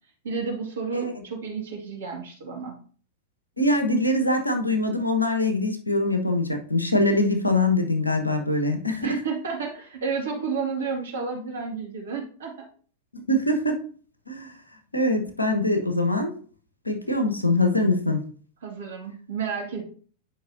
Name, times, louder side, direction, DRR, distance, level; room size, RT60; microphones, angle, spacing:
voice 1, 0.2-2.8 9.0-12.5 18.6-19.8, right 5 dB, 65° right, 2 dB, 2.1 m, -31 dB
voice 2, 3.6-9.2 13.1-13.8 14.3-14.5 14.9-16.3 16.8-18.2, left 1 dB, 85° left, 5 dB, 1.2 m, -23 dB
10.0 x 5.4 x 2.7 m, 0.43 s
figure-of-eight pair, 90°, 0 cm